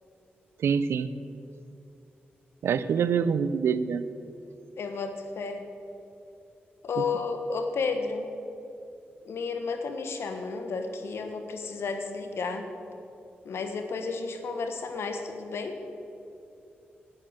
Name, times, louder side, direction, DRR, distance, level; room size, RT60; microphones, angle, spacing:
voice 1, 0.6-1.1 2.6-4.0, right 6 dB, 80° right, 14 dB, 0.5 m, -25 dB
voice 2, 4.8-5.7 6.8-8.3 9.2-12.7 13.4-15.8, left 4 dB, 80° left, 6 dB, 1.2 m, -32 dB
11.5 x 9.6 x 6.5 m, 2.8 s
cardioid pair, 50°, 4 cm